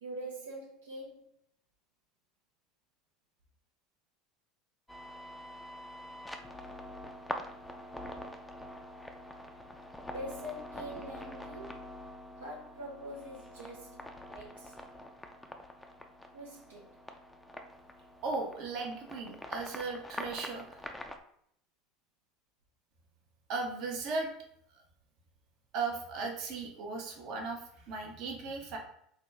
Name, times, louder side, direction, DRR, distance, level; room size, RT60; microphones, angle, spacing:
voice 1, 0.0-1.3 10.1-11.9 12.4-14.0 14.3-14.7 16.3-16.9, right 1 dB, 80° right, -3 dB, 0.6 m, -44 dB
sound 1, 4.9-21.2, left 1 dB, 10° left, 0.4 m, -45 dB
voice 2, 18.2-20.8 23.5-24.3 25.7-28.8, right 4 dB, 55° right, 1 dB, 0.9 m, -37 dB
3.9 x 2.3 x 3.3 m, 0.69 s
hypercardioid pair, 75°, 0 cm